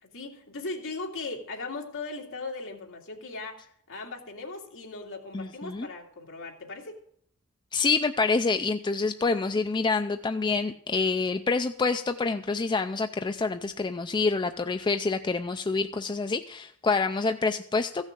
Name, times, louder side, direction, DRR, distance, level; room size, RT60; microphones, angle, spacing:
voice 1, 0.0-7.0, left 3 dB, 65° left, 0 dB, 2.4 m, -38 dB
voice 2, 5.3-5.9 7.7-18.1, left 4 dB, 20° left, 8 dB, 0.4 m, -27 dB
15.0 x 6.4 x 7.6 m, 0.65 s
head